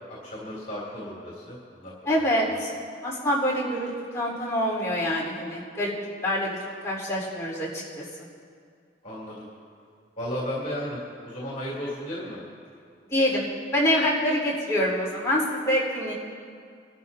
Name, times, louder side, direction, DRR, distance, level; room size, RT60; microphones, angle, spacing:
voice 1, 0.0-1.9 9.0-9.5 10.2-12.4, equal, 45° left, -6 dB, 3.3 m, -34 dB
voice 2, 2.1-2.7 3.0-5.9 6.2-6.5 6.8-8.0 13.1-13.5 13.7-16.1, equal, 15° left, -5 dB, 4.2 m, -25 dB
25.5 x 13.0 x 2.8 m, 2.3 s
head